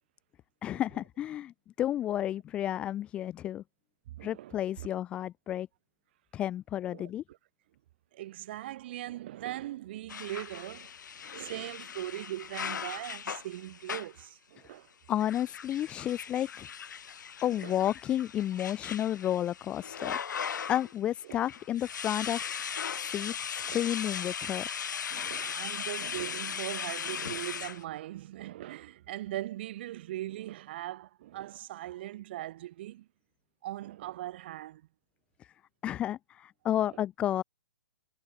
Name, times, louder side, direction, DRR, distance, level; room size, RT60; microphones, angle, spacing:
voice 1, 0.6-3.6 4.2-5.7 6.3-7.2 14.6-14.7 15.1-16.7 17.4-20.2 20.7-22.6 23.0-24.7 35.8-37.4, left 12 dB, 10° left, 0.8 m, -31 dB
voice 2, 4.1-4.9 6.9-7.1 8.1-10.9 11.2-14.9 17.4-17.7 21.2-21.4 23.6-23.9 25.1-33.1 33.6-34.8 36.7-37.0, right 14 dB, 30° right, 1.8 m, -40 dB
sound 1, 10.1-14.2 15.1-21.0 21.3-27.8, left 7 dB, 60° left, 3.1 m, -38 dB
hypercardioid pair, 175°, 11 cm